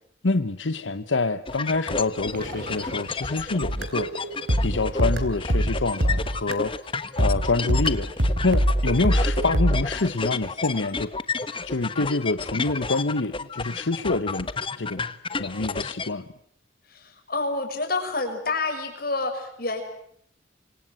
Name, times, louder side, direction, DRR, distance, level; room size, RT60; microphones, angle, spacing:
voice 1, 0.2-4.1 4.6-11.1 11.6-14.5 14.7-15.0 15.4-16.2, left 3 dB, 80° left, 12 dB, 1.0 m, -26 dB
sound 1, 1.5-16.1, left 4 dB, 30° left, 1.3 m, -31 dB
sound 2, 2.3-6.6 7.0-7.1 7.5-7.7, equal, 50° right, 5.3 m, -43 dB
sound 3, 3.6-6.8 7.2-9.8, equal, 70° right, 3.5 m, -24 dB
voice 2, 16.8-19.8, left 3 dB, 50° left, 5 dB, 6.9 m, -28 dB
26.5 x 25.5 x 7.7 m, 0.68 s
head